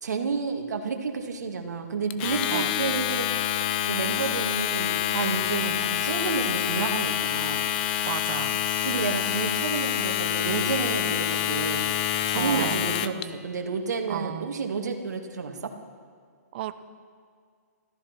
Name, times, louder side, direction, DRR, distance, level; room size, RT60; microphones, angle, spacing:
voice 1, 0.0-3.3 3.9-7.7 8.8-12.0 12.3-15.7, right 5 dB, 75° right, 3 dB, 2.1 m, -30 dB
Domestic sounds home sounds, 2.1-13.2, left 12 dB, 30° left, 0.5 m, -27 dB
voice 2, 8.0-8.6 12.3-12.9 14.1-14.5 16.5-16.7, right 13 dB, 35° right, 11 dB, 0.8 m, -33 dB
14.0 x 14.0 x 6.0 m, 2.1 s
hypercardioid pair, 155°, 9 cm